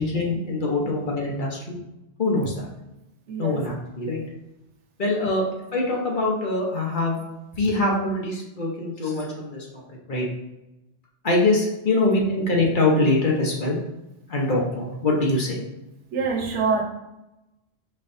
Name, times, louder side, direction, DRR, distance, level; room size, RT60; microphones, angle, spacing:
voice 1, 0.0-1.8 2.2-2.7 3.4-4.2 5.0-5.4 5.7-7.2 7.6-9.7 10.1-10.3 11.2-13.8 14.3-15.6, left 2 dB, 50° left, -2 dB, 1.0 m, -23 dB
voice 2, 3.3-3.6 16.1-16.8, right 4 dB, 85° right, 2 dB, 1.0 m, -25 dB
5.4 x 3.2 x 2.6 m, 0.94 s
omnidirectional pair, 1.2 m